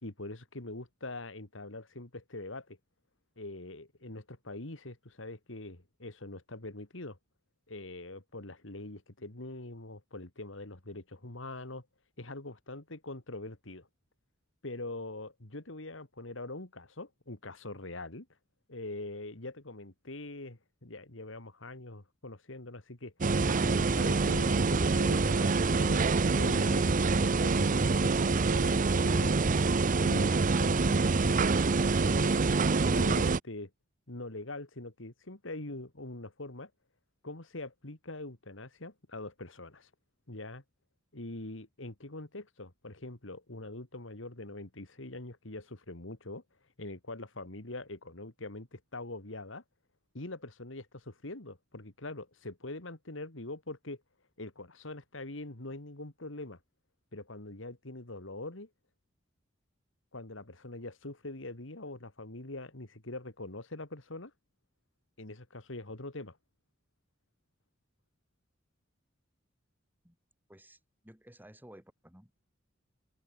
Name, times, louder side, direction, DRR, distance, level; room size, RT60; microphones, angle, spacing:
voice 1, 0.0-2.8 3.4-7.2 7.7-11.9 12.2-13.9 14.6-18.3 18.7-29.4 30.0-31.5 32.0-32.5 32.9-33.7 34.1-36.7 37.2-39.9 40.3-40.6 41.1-46.4 46.8-49.6 50.1-54.0 54.4-56.6 57.1-58.7 60.1-64.3 65.2-66.4, left 2 dB, 70° left, 2.6 m, -43 dB
sound 1, 23.2-33.4, right 3 dB, 45° right, 0.7 m, -26 dB
voice 2, 70.5-70.8 71.0-72.5, right 1 dB, 10° right, 7.1 m, -55 dB
open air
head